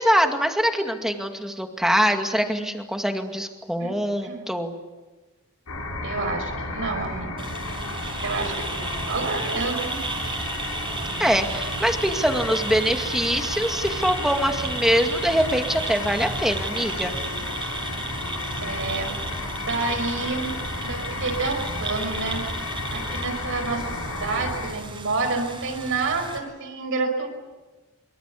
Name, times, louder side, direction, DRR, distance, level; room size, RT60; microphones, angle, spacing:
voice 1, 0.0-4.7 11.2-17.1, equal, ahead, 4 dB, 2.2 m, -23 dB
voice 2, 3.8-4.5 6.0-7.5 8.2-10.0 18.6-19.1 19.7-20.5 20.8-22.4 22.9-27.3, right 3 dB, 60° right, 3 dB, 5.4 m, -29 dB
sound 1, 5.7-24.7, left 2 dB, 90° left, 6.3 m, -32 dB
sound 2, 7.4-26.4, right 3 dB, 25° right, 4.9 m, -34 dB
24.5 x 24.0 x 8.5 m, 1.2 s
head